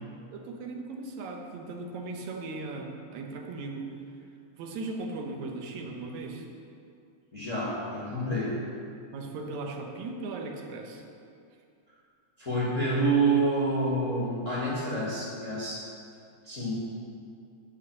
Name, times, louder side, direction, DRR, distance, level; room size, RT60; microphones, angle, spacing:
voice 1, 0.3-3.9 4.6-6.5 9.1-11.0, right 3 dB, 70° right, 2 dB, 2.1 m, -37 dB
voice 2, 7.3-8.5 12.4-15.8 16.4-16.9, right 2 dB, 35° left, -7 dB, 1.3 m, -28 dB
7.0 x 6.8 x 7.9 m, 2.4 s
omnidirectional pair, 3.6 m